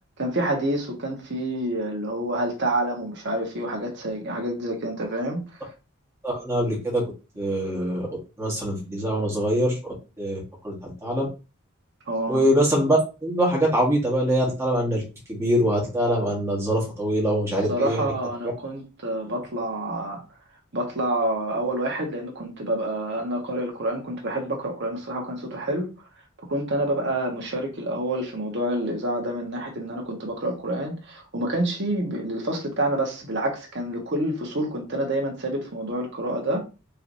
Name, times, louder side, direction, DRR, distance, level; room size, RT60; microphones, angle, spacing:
voice 1, 0.2-5.4 12.1-12.5 17.7-20.2 20.7-25.9 26.5-36.6, right 1 dB, 55° right, 1.3 m, -28 dB
voice 2, 6.2-7.0 7.4-8.1 8.4-11.3 12.3-15.0 15.3-18.1, equal, 15° right, 1.5 m, -24 dB
4.6 x 3.2 x 2.7 m
head